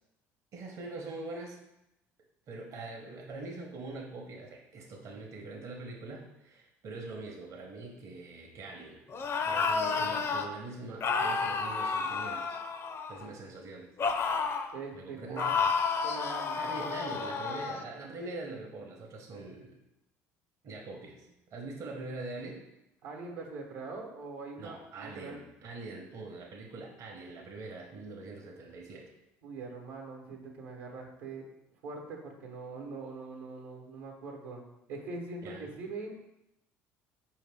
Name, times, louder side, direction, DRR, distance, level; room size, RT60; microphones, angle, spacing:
voice 1, 0.5-1.6 2.5-9.0 9.5-12.6 13.1-13.9 14.9-15.5 16.6-19.7 20.6-22.6 24.6-29.1 35.4-35.7, right 2 dB, 55° right, 0 dB, 0.8 m, -43 dB
sound 1, 9.1-10.5 11.0-13.3 14.0-14.7 15.4-17.8, left 5 dB, 40° left, 0.5 m, -31 dB
voice 2, 14.7-15.5 16.0-17.1 23.0-25.4 29.4-31.4 31.8-34.6 34.9-36.1, right 3 dB, 85° right, 0 dB, 0.9 m, -42 dB
4.8 x 2.8 x 3.4 m, 0.88 s
supercardioid pair, 80°, 6 cm